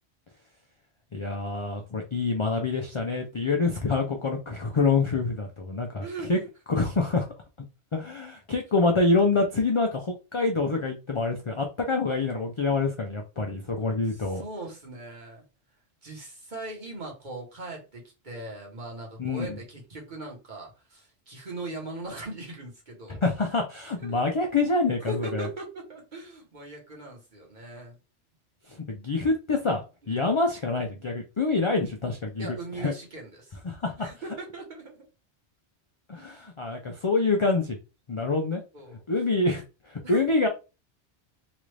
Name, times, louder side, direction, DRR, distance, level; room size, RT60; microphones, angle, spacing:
voice 1, 1.1-6.4 6.7-7.3 7.9-14.4 19.2-19.6 23.1-25.5 28.9-32.5 32.8-32.9 33.6-34.1 36.1-37.8 38.1-38.6 39.1-40.5, left 3 dB, 50° left, 0.3 m, -26 dB
voice 2, 6.0-6.3 14.0-15.4 16.0-23.2 24.0-24.2 25.0-28.0 30.0-30.2 32.4-33.6 34.0-35.0 36.1-36.5 38.7-39.0 40.0-40.2, right 2 dB, 45° right, 1.3 m, -40 dB
3.1 x 2.5 x 3.2 m
omnidirectional pair, 1.2 m